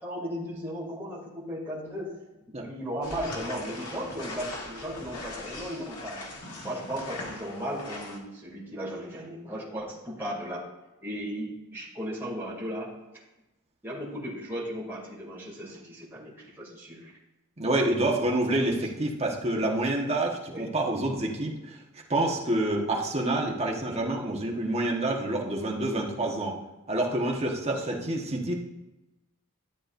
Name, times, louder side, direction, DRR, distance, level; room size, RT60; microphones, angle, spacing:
voice 1, 0.0-2.2 2.6-6.3 6.6-10.6 11.0-12.9 13.8-17.1 18.6-18.8 20.5-20.6 27.6-28.0, equal, 10° right, -6 dB, 2.6 m, -36 dB
sound 1, 3.0-8.2, left 2 dB, 85° left, 1.7 m, -40 dB
voice 2, 17.6-21.8 22.1-26.5 26.9-28.5, right 1 dB, 30° right, -1 dB, 1.3 m, -27 dB
13.0 x 8.5 x 2.6 m, 1.0 s
head